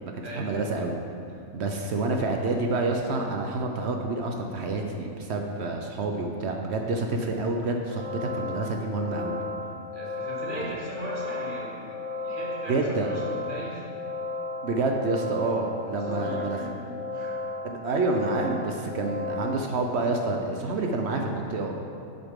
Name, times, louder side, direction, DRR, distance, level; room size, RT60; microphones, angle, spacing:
voice 1, 0.3-1.0 1.5-9.5 10.6-10.7 12.7-13.1 14.6-16.6 17.6-21.8, right 3 dB, 60° right, 3 dB, 0.8 m, -28 dB
sound 1, 7.9-19.6, left 3 dB, 10° left, 0.4 m, -34 dB
voice 2, 9.9-13.8 15.5-15.6 15.9-17.4, equal, 35° right, -5 dB, 1.6 m, -38 dB
8.0 x 6.9 x 3.6 m, 2.6 s
omnidirectional pair, 1.5 m